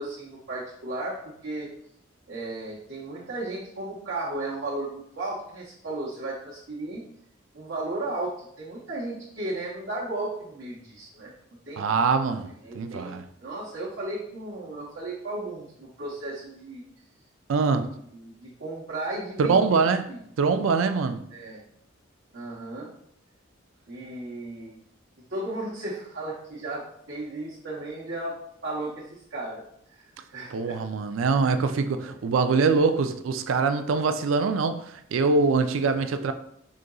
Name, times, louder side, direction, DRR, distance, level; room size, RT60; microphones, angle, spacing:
voice 1, 0.0-1.7 2.3-7.0 7.5-11.3 11.7-11.8 12.6-16.8 18.1-19.8 20.1-20.2 21.3-21.6 22.3-22.9 23.9-24.8 25.3-28.3 28.6-29.6 29.9-30.8 32.0-32.2, right 2 dB, 65° right, 0.9 m, -35 dB
voice 2, 11.8-13.3 17.5-17.9 19.4-20.1 20.4-21.2 30.5-36.3, right 4 dB, 80° right, 0.4 m, -24 dB
5.0 x 3.8 x 2.3 m
head